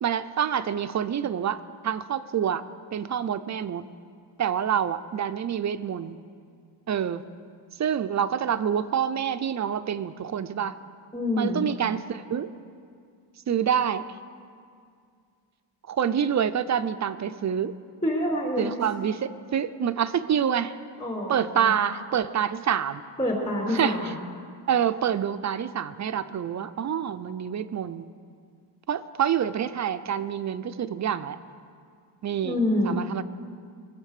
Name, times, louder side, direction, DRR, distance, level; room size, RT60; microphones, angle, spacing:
voice 1, 0.0-2.6 2.9-3.8 4.4-6.2 6.9-7.2 7.8-10.8 11.4-12.5 13.5-14.1 15.9-17.7 18.6-20.7 21.3-23.0 23.7-24.0 24.7-28.0 28.9-31.4 32.2-32.6 32.8-33.2, right 8 dB, 40° right, 12 dB, 0.5 m, -27 dB
voice 2, 11.1-11.7 18.0-18.7 21.0-21.7 23.2-24.1 32.4-33.0, left 1 dB, 20° left, -2 dB, 3.0 m, -26 dB
22.0 x 8.1 x 6.6 m, 2.2 s
cardioid pair, 130°, 43 cm